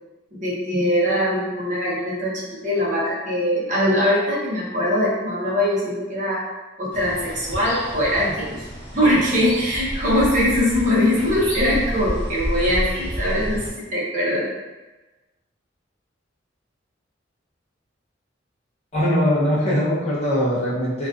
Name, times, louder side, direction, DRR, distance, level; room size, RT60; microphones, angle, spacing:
voice 1, 0.4-6.4 6.8-8.7 8.9-14.5, left 1 dB, 40° right, -7 dB, 0.7 m, -22 dB
sound 1, 6.9-13.7, equal, 10° left, 1.1 m, -30 dB
voice 2, 18.9-21.1, equal, 35° left, -8 dB, 0.7 m, -21 dB
2.4 x 2.3 x 2.3 m, 1.1 s
head